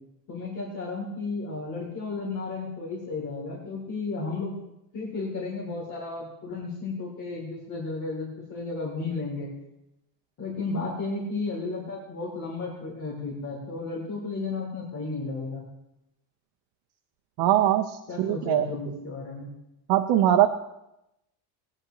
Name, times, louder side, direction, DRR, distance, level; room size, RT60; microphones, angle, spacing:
voice 1, 0.3-4.5 4.9-9.5 10.4-15.6 18.1-19.5, left 3 dB, 40° left, -4 dB, 3.1 m, -33 dB
voice 2, 17.4-18.7 19.9-20.5, right 12 dB, 60° right, 6 dB, 0.8 m, -21 dB
20.5 x 9.8 x 3.0 m, 0.87 s
cardioid pair, 180°, 45 cm